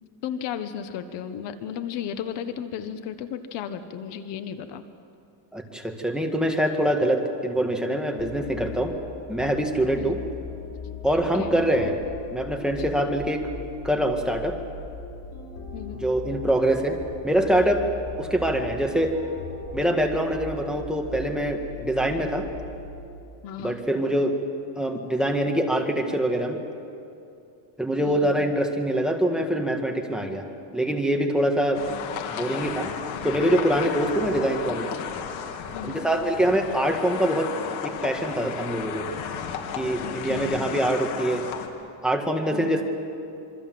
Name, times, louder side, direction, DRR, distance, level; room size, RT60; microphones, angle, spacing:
voice 1, 0.2-4.8 10.0-10.1 11.4-11.6 15.7-16.1 23.4-23.8 28.0-28.4 32.2-32.3 35.7-36.1 40.0-40.6 42.5-42.8, left 8 dB, 60° left, 10 dB, 1.3 m, -34 dB
voice 2, 5.5-8.9 9.3-10.2 11.0-12.0 12.3-13.5 13.8-14.6 15.9-17.0 17.2-17.9 18.2-19.1 19.7-22.5 23.6-24.4 24.8-26.6 27.8-30.5 30.7-31.8 32.3-32.9 33.2-34.9 35.9-37.5 37.8-39.1 39.8-41.4 42.0-42.8, right 1 dB, ahead, 3 dB, 1.9 m, -24 dB
sound 1, 8.2-23.3, left 4 dB, 40° left, 3.9 m, -39 dB
sound 2, 31.7-41.7, left 7 dB, 80° left, 2.7 m, -34 dB
27.0 x 23.5 x 7.8 m, 2.6 s
cardioid pair, 150°, 48 cm